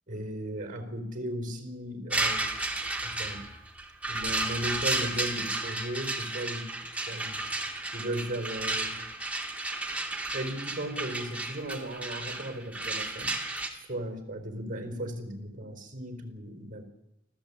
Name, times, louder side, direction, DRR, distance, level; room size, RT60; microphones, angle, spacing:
voice 1, 0.1-2.6 3.0-3.4 4.1-6.7 7.1-7.4 7.9-9.0 10.3-13.3 13.7-16.9, right 1 dB, 45° right, 7 dB, 4.3 m, -36 dB
sound 1, 2.1-13.7, right 2 dB, 10° right, 2.8 m, -33 dB
28.5 x 14.0 x 8.6 m, 0.91 s
head